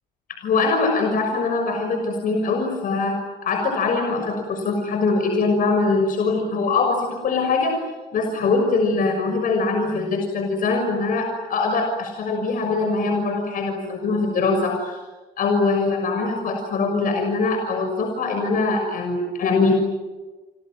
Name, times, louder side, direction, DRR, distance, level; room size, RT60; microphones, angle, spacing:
voice 1, 0.4-3.1 3.4-7.7 8.1-15.0 15.4-19.7, left 3 dB, 55° left, 4 dB, 6.3 m, -22 dB
29.5 x 26.0 x 7.8 m, 1.2 s
cardioid pair, 110°, 17 cm